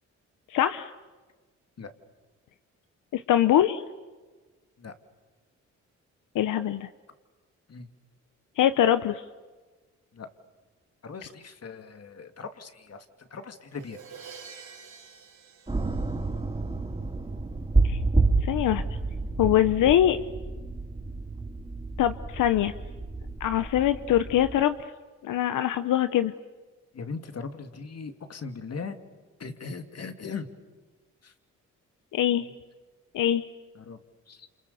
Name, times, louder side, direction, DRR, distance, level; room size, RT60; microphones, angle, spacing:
voice 1, 0.5-0.9 3.1-3.8 6.3-6.9 8.6-9.2 17.8-18.0 18.4-18.8 19.4-20.2 22.0-22.7 23.4-24.8 25.2-26.3 32.1-32.5 33.1-33.4, left 11 dB, 85° left, 11 dB, 0.9 m, -23 dB
voice 2, 11.0-14.0 26.9-29.0 29.4-30.5 31.2-31.3 33.7-34.0 34.3-34.5, left 5 dB, 55° left, 8 dB, 2.7 m, -39 dB
Crash cymbal, 13.7-16.7, right 6 dB, 70° right, 5.4 m, -47 dB
sound 1, 15.7-24.6, right 3 dB, 20° right, 4.3 m, -29 dB
29.5 x 28.0 x 7.1 m, 1.3 s
cardioid pair, 70°, 31 cm